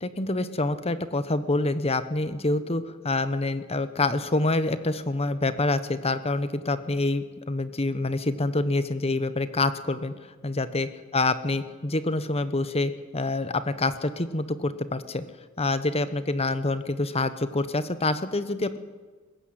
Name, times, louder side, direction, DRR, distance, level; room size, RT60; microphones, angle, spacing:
voice 1, 0.0-10.1 10.4-15.2 15.6-18.8, left 2 dB, 30° left, 13 dB, 1.1 m, -26 dB
21.0 x 15.0 x 9.6 m, 1.4 s
head